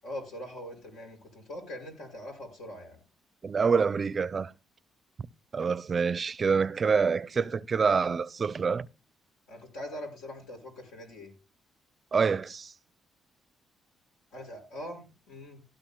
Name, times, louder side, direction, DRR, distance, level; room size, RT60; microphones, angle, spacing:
voice 1, 0.0-3.0 5.9-6.0 9.5-11.3 14.3-15.6, left 1 dB, 90° left, 5.6 m, -42 dB
voice 2, 3.4-4.5 5.5-8.9 12.1-12.7, right 5 dB, 40° right, 0.4 m, -26 dB
17.0 x 12.0 x 2.2 m
cardioid pair, 90°, 0 cm